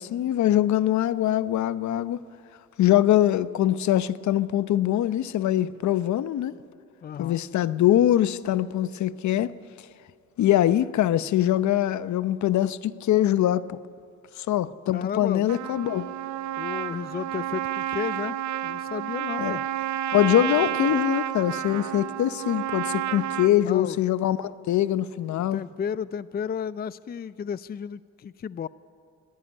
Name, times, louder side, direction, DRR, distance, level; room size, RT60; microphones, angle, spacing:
voice 1, 0.0-2.2 2.8-6.5 7.2-9.5 10.4-13.8 14.4-16.1 19.4-19.6 20.1-25.6, left 12 dB, 70° left, 0.8 m, -23 dB
voice 2, 7.0-7.4 14.9-15.4 16.6-18.4 18.6-19.6 23.6-24.0 25.3-28.7, left 7 dB, 30° left, 0.5 m, -33 dB
Trumpet, 15.5-23.5, right 12 dB, 70° right, 0.9 m, -30 dB
24.5 x 16.5 x 9.7 m
cardioid pair, 90°, 30 cm